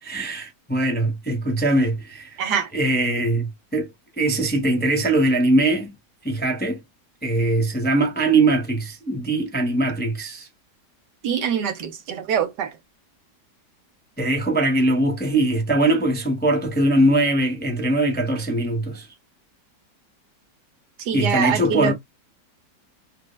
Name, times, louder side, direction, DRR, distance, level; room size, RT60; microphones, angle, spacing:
voice 1, 0.0-2.4 2.7-5.9 6.2-6.8 7.2-10.5 14.2-19.1 21.1-21.9, right 2 dB, 10° left, 0.7 m, -21 dB
voice 2, 2.4-2.7 11.2-12.7 21.1-21.9, right 8 dB, 70° right, 1.3 m, -24 dB
6.1 x 2.1 x 2.2 m
omnidirectional pair, 1.9 m